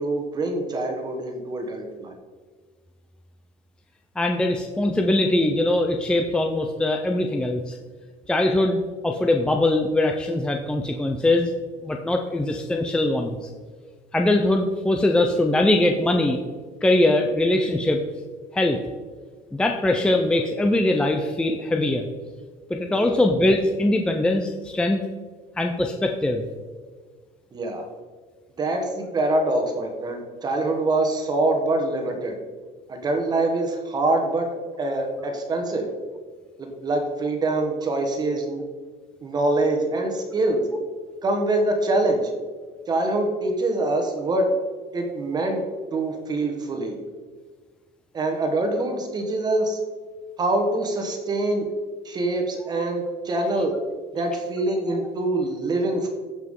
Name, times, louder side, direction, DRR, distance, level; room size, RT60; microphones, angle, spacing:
voice 1, 0.0-2.1 22.9-23.2 27.5-27.8 28.6-32.4 32.9-34.5 34.8-35.9 36.6-38.6 39.2-40.6 41.2-42.3 42.9-44.5 44.9-45.6 45.9-46.9 48.1-49.8 50.4-51.7 52.0-53.7 54.1-56.1, right 2 dB, 25° right, 3 dB, 1.2 m, -24 dB
voice 2, 4.2-7.8 8.3-11.5 11.8-13.4 14.1-16.4 16.8-18.0 18.5-18.8 19.5-22.1 22.7-25.0 25.6-26.4, left 1 dB, 5° left, 3 dB, 0.4 m, -22 dB
15.5 x 5.9 x 3.7 m, 1.5 s
cardioid pair, 160°, 17 cm